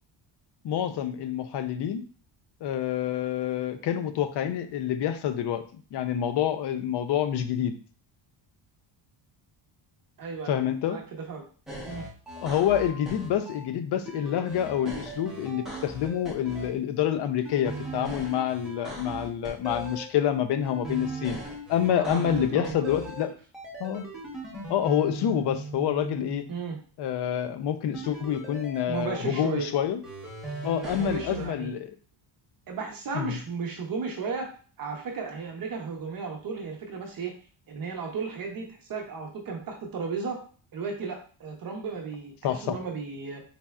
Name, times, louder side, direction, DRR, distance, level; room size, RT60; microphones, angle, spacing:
voice 1, 0.6-2.0 2.6-5.6 5.9-7.8 10.5-11.0 12.4-21.4 21.7-23.3 23.8-24.0 24.7-26.4 27.0-30.0 30.6-31.9 33.1-33.4 42.4-42.8, left 10 dB, 55° left, 9 dB, 0.5 m, -27 dB
voice 2, 10.2-11.4 11.8-12.0 21.9-23.3 26.5-26.8 28.9-29.7 30.8-31.7 32.7-34.5 34.8-37.3 37.7-40.4 40.7-43.4, right 5 dB, 45° right, 1 dB, 0.7 m, -34 dB
sound 1, 11.7-13.7 14.1-16.7 17.5-20.1 20.6-23.2 23.5-26.4 27.9-29.4 30.0-31.5, right 1 dB, ahead, 0.9 m, -39 dB
4.2 x 3.2 x 2.3 m, 0.40 s
cardioid pair, 155°, 49 cm